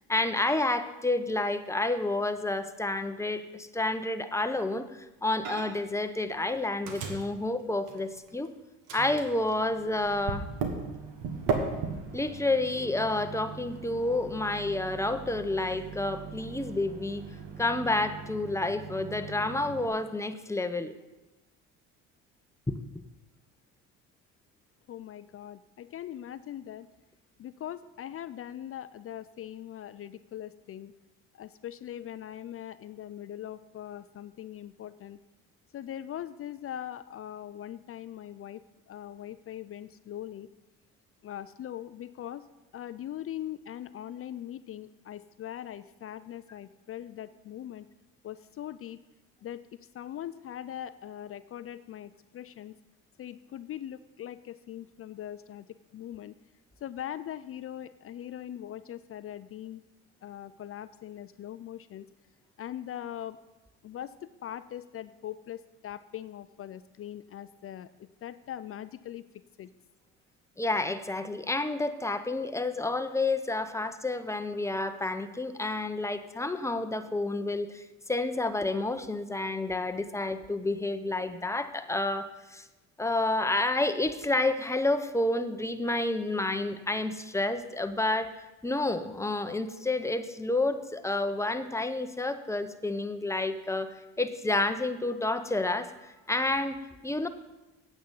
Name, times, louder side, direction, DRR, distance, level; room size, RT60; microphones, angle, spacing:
voice 1, 0.1-8.5 8.9-10.4 12.1-17.2 17.6-21.0 22.7-22.8 70.6-82.7 83.0-97.3, left 2 dB, 10° left, 9 dB, 0.7 m, -30 dB
Microwave oven, 5.4-5.9 6.2-8.5 8.9-19.9, right 5 dB, 75° right, 1.5 m, -38 dB
voice 2, 24.9-26.9 27.4-30.9 31.3-35.2 35.7-40.5 41.2-42.4 42.7-47.9 48.2-49.0 49.4-52.8 53.2-56.3 56.8-59.8 60.2-62.1 62.6-63.4 63.8-69.7, left 11 dB, 40° left, 14 dB, 0.4 m, -41 dB
8.7 x 8.0 x 5.4 m, 1.0 s
supercardioid pair, 75°, 37 cm